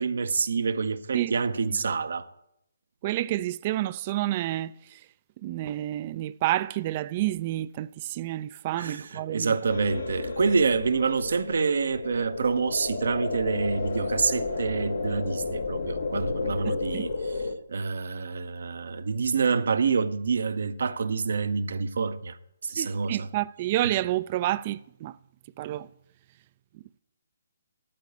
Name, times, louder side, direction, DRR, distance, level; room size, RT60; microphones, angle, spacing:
voice 1, 0.0-2.3 8.8-17.4 17.7-22.4 22.6-23.3, right 5 dB, 65° right, 0.6 m, -27 dB
voice 2, 3.0-5.0 5.4-9.5 16.9-17.1 22.8-25.2 25.6-25.9, right 15 dB, 35° right, 0.3 m, -29 dB
sound 1, 9.7-17.5, left 3 dB, 65° left, 1.0 m, -32 dB
13.0 x 4.6 x 8.0 m
figure-of-eight pair, 140°, 0 cm